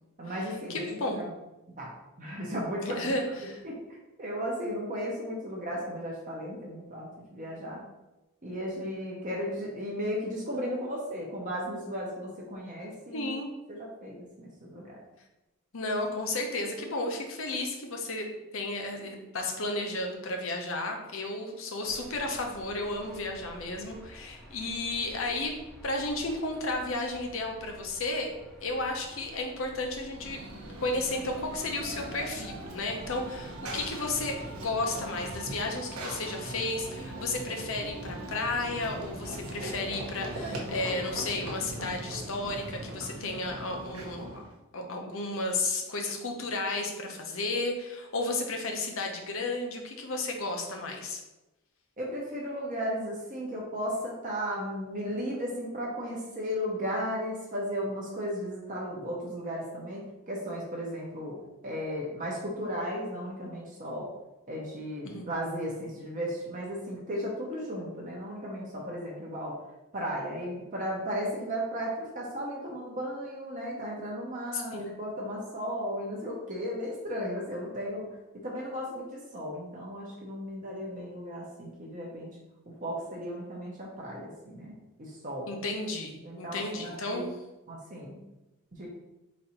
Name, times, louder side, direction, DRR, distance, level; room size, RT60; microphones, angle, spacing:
voice 1, 0.2-1.3 1.8-7.8 8.4-13.3 13.7-15.0 52.0-61.4 61.6-64.1 64.5-69.6 69.9-82.4 82.7-85.5 86.2-87.3 87.7-88.2 88.7-88.9, equal, 35° right, -3 dB, 0.7 m, -35 dB
voice 2, 0.7-1.2 2.8-3.6 13.1-13.5 15.7-25.5 25.8-28.3 28.6-30.4 30.8-44.4 44.7-51.2 65.0-65.3 74.5-74.9 85.5-87.3, left 2 dB, 60° left, 2 dB, 0.7 m, -33 dB
sound 1, 21.8-34.5, equal, ahead, 0.5 m, -52 dB
Run / Train, 30.1-44.6, right 1 dB, 75° right, 0.8 m, -40 dB
4.1 x 2.6 x 4.2 m, 1.0 s
head